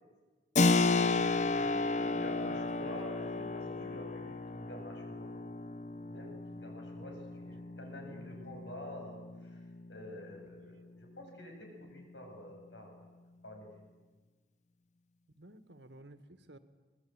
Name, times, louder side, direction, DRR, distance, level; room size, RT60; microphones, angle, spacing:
Keyboard (musical), 0.6-10.9, left 3 dB, 40° left, 0.7 m, -33 dB
voice 1, 0.8-2.7 3.3-4.0 7.0-7.5 8.1-8.7 15.3-16.6, right 1 dB, 85° right, 10 dB, 1.9 m, -55 dB
voice 2, 1.5-5.3 6.1-9.6 9.9-13.1 13.4-13.7, left 1 dB, 85° left, 2 dB, 7.6 m, -49 dB
25.5 x 19.5 x 9.0 m, 1.3 s
head